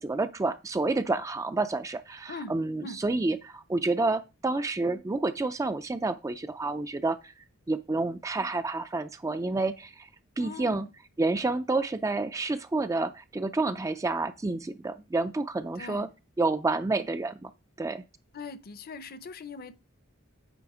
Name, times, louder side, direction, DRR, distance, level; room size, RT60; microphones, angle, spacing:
voice 1, 0.0-7.3 7.7-10.1 10.4-10.9 11.2-16.1 16.4-17.5 17.8-18.0, right 3 dB, 15° right, 0.3 m, -29 dB
voice 2, 10.4-10.9 15.8-16.1 18.3-19.7, left 3 dB, 45° left, 0.6 m, -41 dB
9.0 x 3.4 x 4.8 m
head